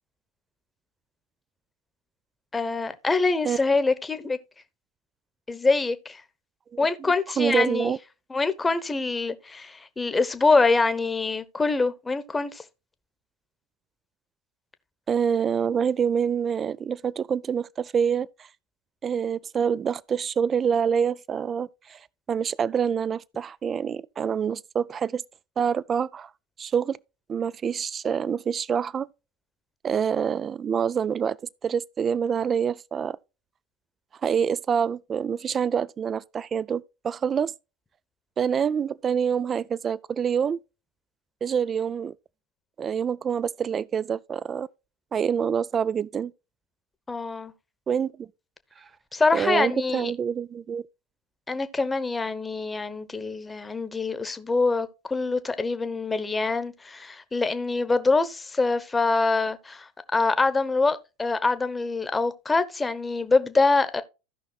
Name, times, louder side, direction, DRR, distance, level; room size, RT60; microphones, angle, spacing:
voice 1, 2.5-4.4 5.5-6.2 6.8-7.9 8.3-12.6 47.1-47.5 49.1-50.1 51.5-64.0, left 3 dB, 15° left, 1.0 m, -25 dB
voice 2, 6.7-8.0 15.1-18.5 19.0-22.0 22.3-25.2 25.6-26.3 26.6-27.0 27.3-29.1 29.8-31.4 31.6-33.2 34.2-37.5 38.4-40.6 41.4-42.1 42.8-44.7 45.1-46.3 47.9-48.3 49.3-50.8, right 7 dB, 30° right, 0.4 m, -26 dB
16.0 x 5.6 x 2.3 m
hypercardioid pair, 85°, 0 cm